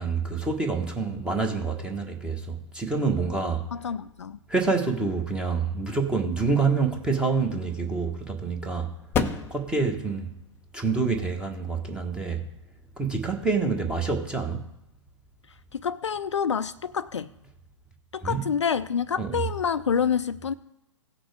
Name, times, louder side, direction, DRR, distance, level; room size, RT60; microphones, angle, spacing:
voice 1, 0.0-3.6 4.5-8.9 9.5-10.3 10.7-12.4 13.0-14.6 18.2-18.5 19.2-19.5, right 4 dB, 5° right, 1.3 m, -27 dB
voice 2, 3.7-4.4 15.7-17.3 18.1-20.5, left 7 dB, 65° left, 0.5 m, -27 dB
sound 1, 7.0-13.8, left 5 dB, 15° left, 0.6 m, -36 dB
17.5 x 6.0 x 3.4 m
figure-of-eight pair, 115°, 16 cm